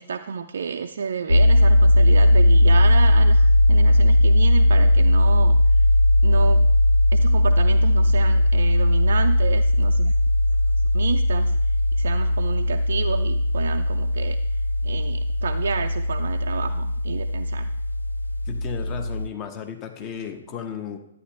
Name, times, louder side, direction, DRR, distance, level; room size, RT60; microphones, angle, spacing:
voice 1, 0.0-5.6 6.2-6.7 7.1-10.1 10.9-11.6 11.9-14.4 14.8-17.7, right 6 dB, 55° right, 5 dB, 0.4 m, -30 dB
sound 1, 1.3-19.3, left 1 dB, 85° left, 0.3 m, -18 dB
voice 2, 18.5-21.0, left 8 dB, 25° left, 5 dB, 1.0 m, -34 dB
11.5 x 9.1 x 3.3 m, 0.85 s
figure-of-eight pair, 120°, 0 cm